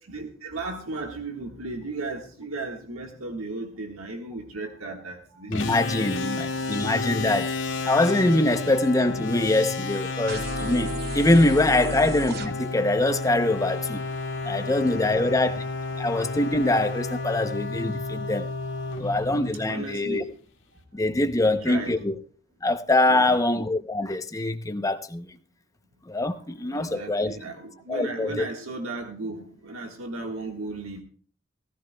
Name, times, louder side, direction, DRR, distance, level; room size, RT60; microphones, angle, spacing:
voice 1, 0.1-5.7 6.0-6.4 8.7-8.8 11.8-12.0 14.6-15.4 18.9-19.2 19.7-20.3 21.4-21.9 23.1-23.4 26.2-31.0, right 3 dB, 85° right, 3 dB, 1.5 m, -36 dB
sound 1, 5.5-20.1, left 3 dB, 60° left, 1.9 m, -31 dB
voice 2, 5.5-7.5 7.8-14.0 14.4-15.6 16.0-18.5 19.0-20.3 20.9-22.1 22.6-25.2 26.1-27.3 27.9-28.5, left 2 dB, 15° left, 9 dB, 0.6 m, -23 dB
sound 2, 10.3-12.5, right 2 dB, 50° right, 0.9 m, -34 dB
16.5 x 15.0 x 2.2 m, 0.41 s
head